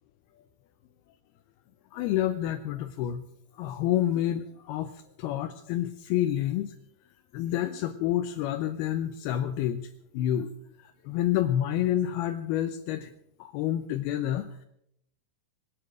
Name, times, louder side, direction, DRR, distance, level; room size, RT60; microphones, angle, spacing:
voice 1, 1.9-3.3 3.5-6.7 7.3-10.5 10.8-13.1 13.4-14.7, left 12 dB, 80° left, 7 dB, 2.4 m, -29 dB
24.5 x 9.0 x 6.4 m, 0.74 s
omnidirectional pair, 5.2 m